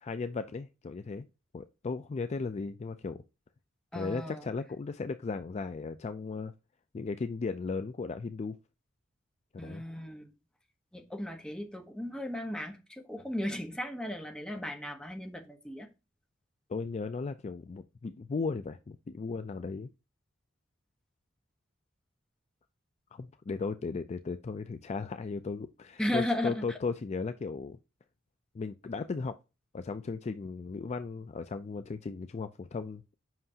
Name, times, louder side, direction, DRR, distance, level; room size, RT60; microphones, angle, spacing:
voice 1, 0.0-1.3 1.5-3.2 3.9-6.5 6.9-8.6 9.5-9.8 16.7-19.9 23.1-27.8 28.5-29.4 29.7-33.1, left 4 dB, 35° left, 0.3 m, -36 dB
voice 2, 3.9-4.5 9.6-10.3 10.9-15.9 26.0-26.8, left 1 dB, 5° left, 1.1 m, -35 dB
7.6 x 5.7 x 2.8 m
head